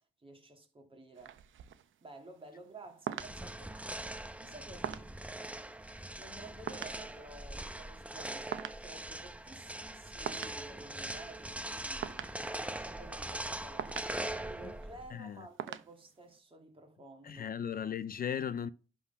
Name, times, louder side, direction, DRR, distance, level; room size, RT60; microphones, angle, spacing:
voice 1, 0.0-1.4 2.0-5.1 6.2-13.9 14.4-17.5, right 2 dB, 25° right, 2.6 m, -53 dB
sound 1, 1.1-16.4, right 10 dB, 70° right, 0.7 m, -46 dB
sound 2, 3.2-15.1, right 1 dB, 5° right, 0.8 m, -42 dB
voice 2, 17.2-18.7, left 8 dB, 45° left, 0.4 m, -36 dB
11.0 x 4.1 x 5.7 m
cardioid pair, 100°, 21 cm